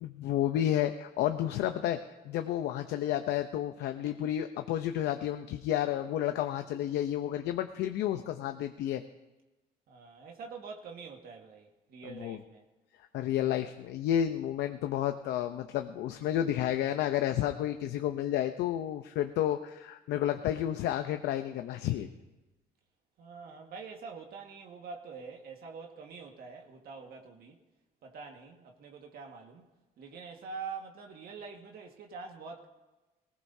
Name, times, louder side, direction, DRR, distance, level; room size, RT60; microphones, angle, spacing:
voice 1, 0.0-2.0 2.2-9.0 12.2-12.4 13.1-22.1, left 11 dB, 80° left, 0.7 m, -31 dB
voice 2, 9.9-12.6 23.2-27.6 28.0-29.7 30.0-32.7, right 5 dB, 65° right, 1.7 m, -45 dB
19.5 x 18.5 x 2.8 m
cardioid pair, 110°, 17 cm